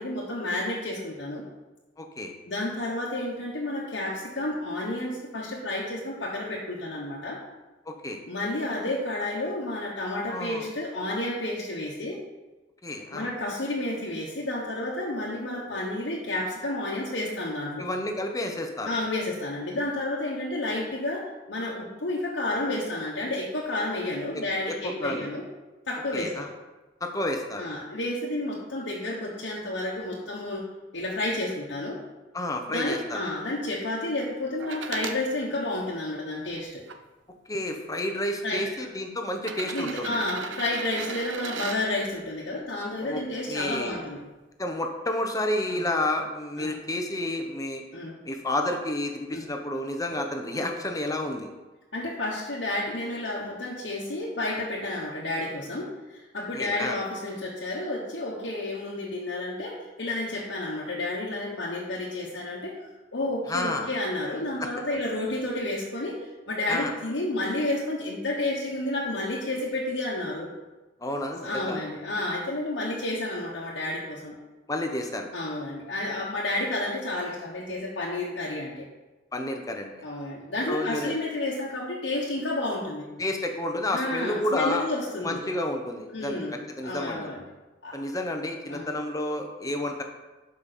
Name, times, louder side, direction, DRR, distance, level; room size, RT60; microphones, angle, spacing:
voice 1, 0.0-1.5 2.5-7.4 8.3-12.2 13.1-17.9 18.8-25.4 25.9-26.5 27.6-30.7 30.9-32.0 32.7-36.8 38.4-38.7 39.7-44.2 45.7-45.9 46.6-46.7 47.9-48.2 49.3-49.5 50.6-50.7 51.9-70.5 71.4-74.4 75.3-78.9 80.0-83.1 83.9-85.4 86.1-86.5 86.8-87.4 87.8-88.0 88.7-88.9, left 2 dB, 70° left, -4 dB, 1.2 m, -31 dB
voice 2, 2.0-2.3 7.9-8.2 10.3-10.7 12.8-13.3 17.8-18.9 24.3-24.4 24.7-25.3 26.1-26.5 27.0-27.7 32.3-33.2 37.5-40.2 43.0-43.2 43.5-44.0 44.6-47.8 48.2-51.5 56.5-56.9 63.5-63.9 64.6-64.7 66.7-66.9 71.0-71.8 74.7-75.3 79.3-79.9 80.7-81.1 83.2-84.9 85.2-87.3 87.9-90.0, left 1 dB, 20° left, 4 dB, 0.9 m, -30 dB
sound 1, 34.6-35.2 35.9-37.0 38.0-38.1 39.3-41.8 43.7-43.8, right 5 dB, 80° right, 0.7 m, -37 dB
12.0 x 5.2 x 4.3 m, 1.1 s
head